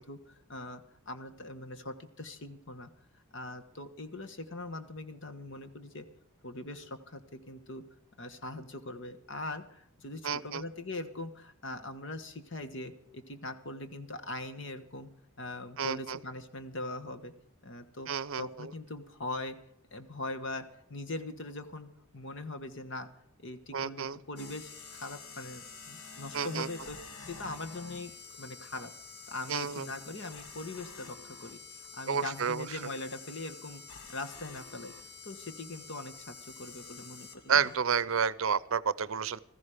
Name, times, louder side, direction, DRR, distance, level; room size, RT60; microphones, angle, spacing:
voice 1, 0.0-2.9 3.3-6.1 6.4-7.9 8.2-15.1 15.4-17.3 17.6-19.6 19.9-23.1 23.4-28.1 28.4-28.9 29.3-31.6 31.9-34.9 35.2-37.7, left 2 dB, 55° left, 9 dB, 1.3 m, -41 dB
voice 2, 10.2-10.6 15.8-16.2 18.1-18.7 23.7-24.2 26.3-26.7 29.5-29.9 32.1-32.7 37.5-39.4, right 7 dB, 65° right, 19 dB, 0.6 m, -30 dB
sound 1, 24.4-37.8, left 5 dB, 85° left, 1.5 m, -48 dB
16.0 x 14.5 x 5.0 m, 0.75 s
head